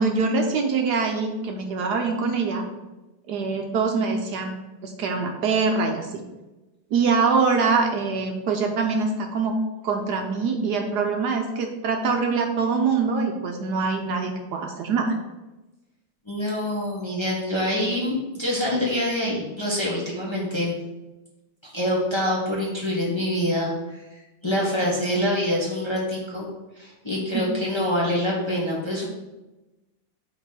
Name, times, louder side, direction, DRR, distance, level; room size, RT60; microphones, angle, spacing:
voice 1, 0.0-2.6 3.3-4.5 4.8-6.2 6.9-9.6 9.8-15.1 27.3-27.5, right 4 dB, 70° right, 3 dB, 1.2 m, -24 dB
voice 2, 16.2-20.8 21.6-26.5 26.8-29.1, left 1 dB, 15° left, -5 dB, 1.2 m, -26 dB
5.6 x 4.1 x 6.1 m, 1.1 s
omnidirectional pair, 2.0 m